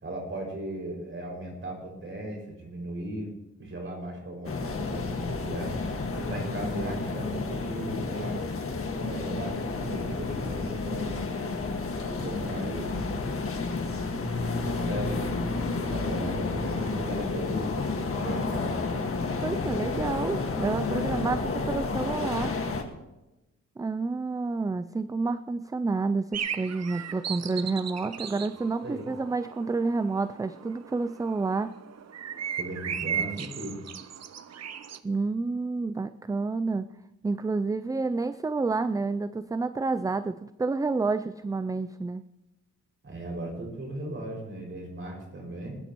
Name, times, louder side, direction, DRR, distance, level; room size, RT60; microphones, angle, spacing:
voice 1, 0.0-3.3 3.6-8.4 9.0-11.2 11.9-13.2 14.5-18.8 28.3-28.4 28.8-29.0 32.6-33.8 43.0-45.8, right 1 dB, 45° right, -1 dB, 5.7 m, -37 dB
sound 1, 4.4-22.8, left 3 dB, 50° left, 1.7 m, -31 dB
voice 2, 19.4-22.6 23.8-31.7 35.0-36.9 37.2-42.2, right 3 dB, 10° right, 12 dB, 0.3 m, -29 dB
sound 2, 26.3-35.0, right 8 dB, 65° right, 0.8 m, -37 dB
20.5 x 12.5 x 3.0 m, 1.0 s
cardioid pair, 100°, 29 cm